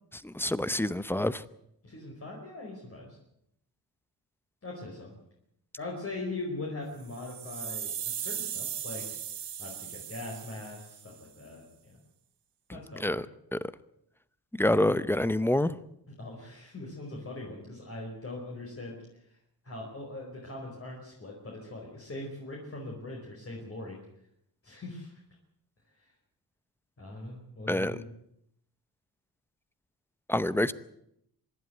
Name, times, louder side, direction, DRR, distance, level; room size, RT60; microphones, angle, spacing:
voice 1, 0.2-1.4 13.0-13.3 13.5-13.6 14.5-15.8 27.7-28.0 30.3-30.7, left 1 dB, 5° left, 16 dB, 0.7 m, -27 dB
voice 2, 1.8-3.2 4.6-5.1 5.8-9.1 9.6-12.0 12.7-13.2 16.2-19.0 19.6-24.0 24.6-25.1 27.0-28.1, left 2 dB, 35° left, -2 dB, 4.8 m, -41 dB
sound 1, 7.0-11.2, right 9 dB, 80° right, 2.4 m, -38 dB
25.0 x 11.5 x 9.4 m, 0.76 s
wide cardioid pair, 135°, 40 cm